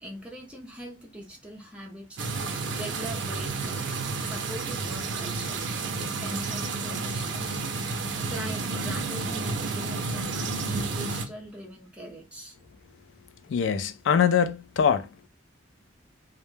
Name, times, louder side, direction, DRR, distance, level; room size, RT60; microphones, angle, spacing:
voice 1, 0.0-2.2 2.7-3.8 4.2-5.7 6.2-7.6 8.3-12.6, equal, 5° right, 0.6 m, -41 dB
sound 1, 2.2-11.2, right 3 dB, 70° right, 0.5 m, -31 dB
voice 2, 13.5-15.3, left 7 dB, 75° left, 0.3 m, -23 dB
2.2 x 2.1 x 3.1 m
head